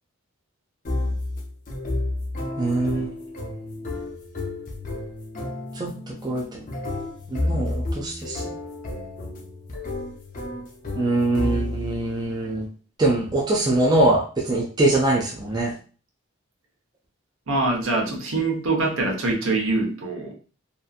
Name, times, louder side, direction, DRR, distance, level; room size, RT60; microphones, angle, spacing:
sound 1, 0.8-12.0, left 2 dB, 40° left, 0.5 m, -31 dB
voice 1, 2.6-3.1 5.7-6.6 7.3-8.4 11.0-12.7 13.0-15.7, right 2 dB, 20° right, -3 dB, 0.4 m, -23 dB
voice 2, 17.5-20.3, right 2 dB, 70° right, 0 dB, 0.8 m, -24 dB
2.7 x 2.5 x 2.4 m, 0.38 s
head